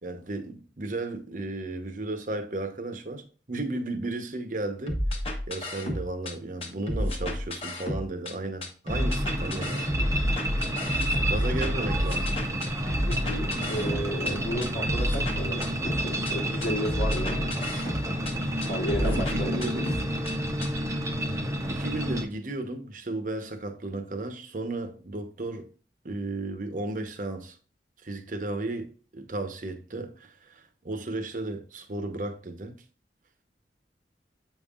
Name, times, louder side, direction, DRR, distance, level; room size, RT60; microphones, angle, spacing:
voice 1, 0.0-5.0 5.5-9.9 11.3-12.3 19.0-19.9 21.7-25.7 26.0-27.6 28.0-32.8, right 2 dB, 45° right, 0.9 m, -34 dB
sound 1, 4.9-6.3 6.6-8.3 8.6-14.3 14.6-16.3 16.6-18.3 18.6-20.3 20.6-20.7, equal, 35° left, 1.1 m, -30 dB
sound 2, 8.9-22.3, right 1 dB, 15° right, 0.7 m, -30 dB
voice 2, 13.1-17.5 18.6-19.8, equal, 70° left, 1.2 m, -33 dB
7.6 x 5.5 x 2.4 m
head